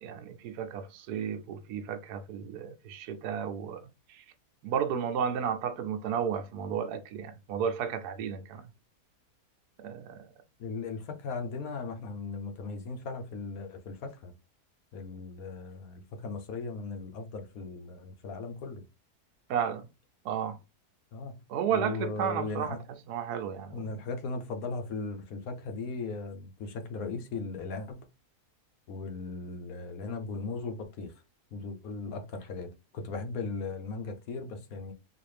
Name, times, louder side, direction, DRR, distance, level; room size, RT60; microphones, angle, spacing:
voice 1, 0.0-4.2 4.6-8.6 9.8-10.2 19.5-19.9 20.2-20.6 21.5-22.8 23.1-23.8, right 8 dB, 85° right, 1.1 m, -33 dB
voice 2, 10.6-14.3 14.9-18.8 21.1-21.4 21.7-22.8 23.7-28.1 28.9-31.1 31.5-34.9, left 3 dB, 70° left, 1.1 m, -37 dB
3.9 x 2.5 x 3.3 m
omnidirectional pair, 1.7 m